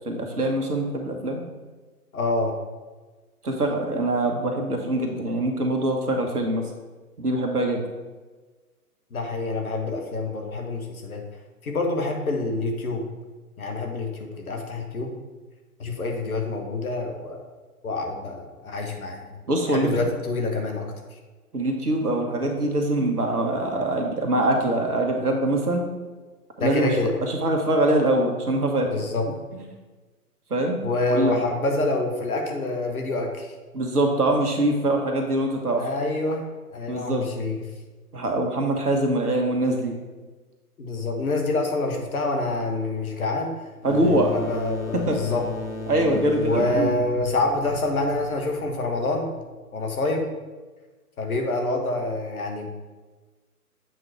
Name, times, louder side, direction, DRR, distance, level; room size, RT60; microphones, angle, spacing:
voice 1, 0.0-1.4 3.4-6.6 7.2-7.8 19.5-20.1 21.5-25.9 26.6-26.9 27.2-29.0 29.5-29.7 30.5-30.8 31.1-31.4 33.7-35.8 36.9-37.3 38.1-39.9 43.8-44.3 44.9-45.2 45.9-46.9, right 1 dB, 70° right, 2 dB, 1.4 m, -23 dB
voice 2, 2.1-2.6 9.1-11.2 11.6-13.1 13.6-15.1 15.8-17.4 17.8-19.3 19.7-20.9 26.6-27.2 28.9-29.3 30.8-33.5 35.7-36.4 36.7-37.6 40.8-43.5 44.3-45.5 46.4-49.3 49.7-50.3 51.2-52.7, left 2 dB, 65° left, 3 dB, 1.3 m, -27 dB
sound 1, 43.8-49.3, left 4 dB, 45° left, 1.0 m, -35 dB
7.7 x 3.9 x 4.5 m, 1.3 s
figure-of-eight pair, 125°, 46 cm